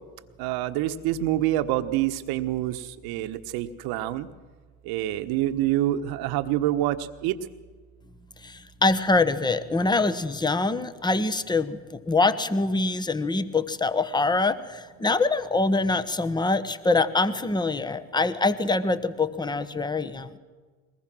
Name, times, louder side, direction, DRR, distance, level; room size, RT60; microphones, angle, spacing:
voice 1, 0.4-4.3 4.9-7.3, right 14 dB, 65° right, 11 dB, 1.3 m, -26 dB
voice 2, 8.4-20.3, left 3 dB, 10° left, 12 dB, 1.2 m, -24 dB
22.0 x 20.0 x 6.2 m, 1.4 s
hypercardioid pair, 80°, 40 cm